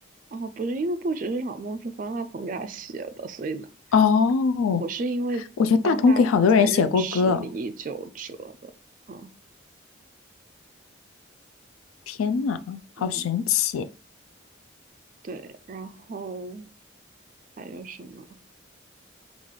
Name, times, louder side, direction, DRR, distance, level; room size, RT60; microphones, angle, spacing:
voice 1, 0.3-3.7 4.7-5.4 5.8-8.7 9.1-9.3 13.0-13.4 15.2-16.7 17.6-18.3, right 3 dB, 40° right, 0.3 m, -33 dB
voice 2, 3.9-4.8 5.6-7.5 12.1-13.9, left 5 dB, 90° left, 0.3 m, -21 dB
3.8 x 2.4 x 3.1 m
head